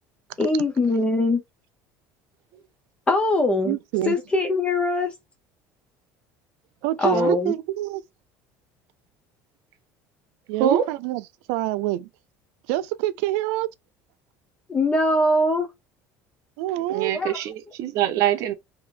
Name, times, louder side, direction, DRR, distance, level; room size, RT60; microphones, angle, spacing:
voice 1, 0.4-1.4 3.1-3.8 4.0-5.1 7.0-7.5 14.7-15.7 17.1-17.4, left 2 dB, 15° left, 0.6 m, -22 dB
voice 2, 3.6-4.2 6.8-7.2 7.5-8.0 10.5-11.2 11.5-12.1 12.7-13.7 16.6-17.1, right 14 dB, 85° right, 0.4 m, -26 dB
voice 3, 16.9-18.5, right 10 dB, 55° right, 0.8 m, -23 dB
3.4 x 2.8 x 2.5 m
cardioid pair, 160°, 7 cm